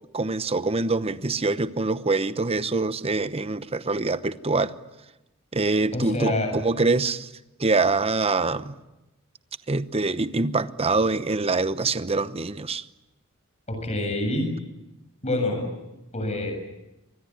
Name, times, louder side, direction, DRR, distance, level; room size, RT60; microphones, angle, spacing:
voice 1, 0.1-4.8 5.5-7.3 7.6-8.7 9.7-12.8, right 3 dB, 25° right, 0.9 m, -24 dB
voice 2, 5.9-6.6 13.7-14.5 15.2-15.6 16.1-16.5, left 1 dB, 30° left, 7.4 m, -26 dB
25.5 x 20.5 x 9.9 m
head